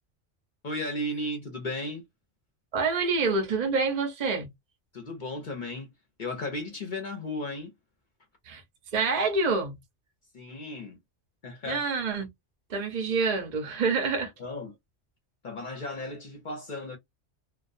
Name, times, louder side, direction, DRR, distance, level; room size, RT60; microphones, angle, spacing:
voice 1, 0.6-2.0 4.9-5.9 6.2-7.7 10.3-11.0 11.4-11.9 14.4-14.7 15.4-17.0, left 1 dB, 50° left, 0.7 m, -35 dB
voice 2, 2.7-4.5 8.5-8.6 8.9-9.7 11.7-12.3 12.7-14.3, right 4 dB, 45° right, 0.6 m, -27 dB
2.2 x 2.2 x 2.4 m
omnidirectional pair, 1.2 m